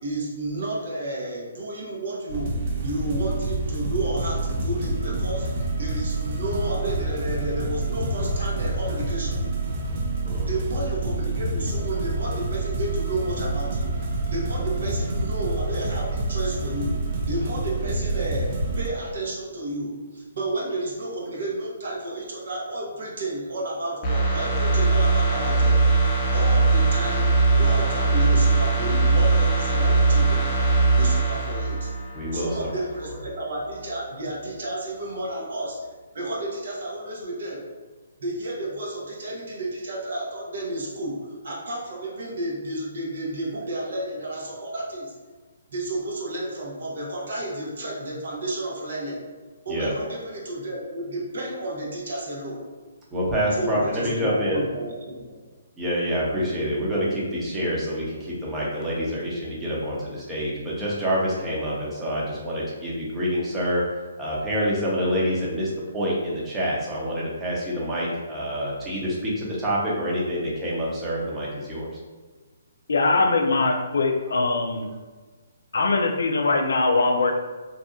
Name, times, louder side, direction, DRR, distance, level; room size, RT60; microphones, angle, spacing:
voice 1, 0.0-2.6 2.8-9.5 10.5-13.9 14.3-17.0 17.2-30.5 30.9-31.9 32.3-35.9 36.1-37.6 38.2-45.1 45.7-49.2 49.6-52.6 53.5-55.4, right 1 dB, 65° right, -4 dB, 0.8 m, -31 dB
sound 1, 2.3-18.9, right 2 dB, 40° right, 0.5 m, -27 dB
sound 2, 24.0-32.7 33.0-33.2, right 3 dB, 25° left, 0.6 m, -20 dB
voice 2, 32.1-32.7 49.7-49.9 53.1-54.6 55.8-63.8 64.2-71.9, equal, 10° right, -6 dB, 0.7 m, -27 dB
voice 3, 72.9-74.9 75.7-77.4, left 3 dB, 70° left, 4 dB, 0.3 m, -22 dB
2.7 x 2.2 x 2.5 m, 1.3 s
hypercardioid pair, 140°, 0 cm